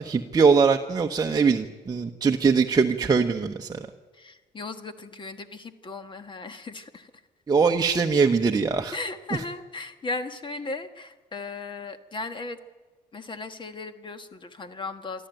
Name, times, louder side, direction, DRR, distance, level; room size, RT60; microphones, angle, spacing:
voice 1, 0.0-3.9 7.5-9.0, right 5 dB, 25° right, 3 dB, 1.0 m, -22 dB
voice 2, 4.1-7.1 8.9-12.6 13.1-15.3, left 3 dB, 30° left, 9 dB, 1.5 m, -36 dB
24.0 x 13.5 x 9.2 m, 1.3 s
cardioid pair, 110°, 17 cm